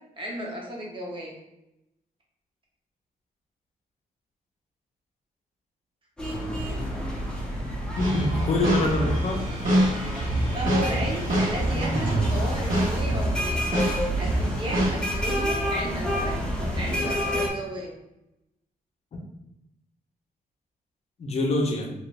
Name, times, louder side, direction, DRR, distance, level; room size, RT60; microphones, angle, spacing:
voice 1, 0.2-1.4 10.5-13.6 14.2-16.4 16.7-17.9, right 1 dB, 35° right, -2 dB, 0.8 m, -34 dB
sound 1, 6.2-17.5, equal, 5° left, 0.7 m, -29 dB
sound 2, 7.9-13.4 13.7-14.9, right 1 dB, 65° right, 1.3 m, -26 dB
voice 2, 8.0-9.4 21.2-21.9, left 2 dB, 45° left, 1 dB, 0.6 m, -25 dB
2.9 x 2.5 x 3.2 m, 0.87 s
wide cardioid pair, 150°, 15 cm